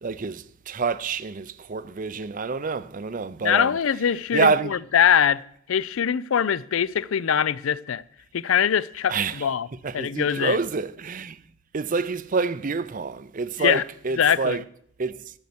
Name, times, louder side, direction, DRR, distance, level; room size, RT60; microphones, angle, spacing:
voice 1, 0.0-3.8 4.3-4.8 9.1-9.5 9.8-11.4 11.7-14.6 15.0-15.2, right 4 dB, 40° right, 0.5 m, -27 dB
voice 2, 3.4-5.4 5.7-8.0 8.3-9.7 9.9-10.6 13.6-13.8 14.2-14.6, left 8 dB, 65° left, 0.4 m, -22 dB
13.5 x 6.3 x 7.0 m
head